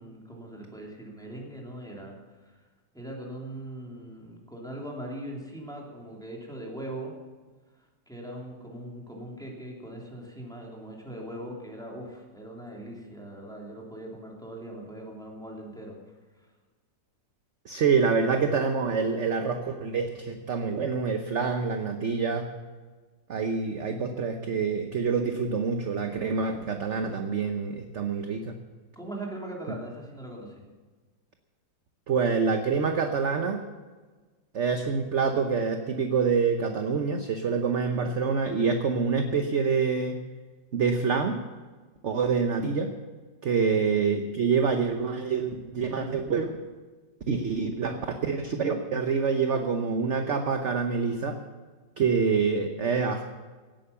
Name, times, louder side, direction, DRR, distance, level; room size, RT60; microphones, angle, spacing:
voice 1, 0.0-2.1 2.9-7.1 8.1-15.9 28.9-30.6 43.6-43.8, right 1 dB, ahead, -2 dB, 3.1 m, -40 dB
voice 2, 17.6-22.5 23.3-28.6 32.1-33.6 34.5-40.2 40.7-41.4 42.0-42.9 43.4-46.6 47.3-51.4 52.0-53.2, right 5 dB, 50° right, 5 dB, 1.0 m, -26 dB
17.0 x 9.2 x 7.0 m, 1.4 s
omnidirectional pair, 2.0 m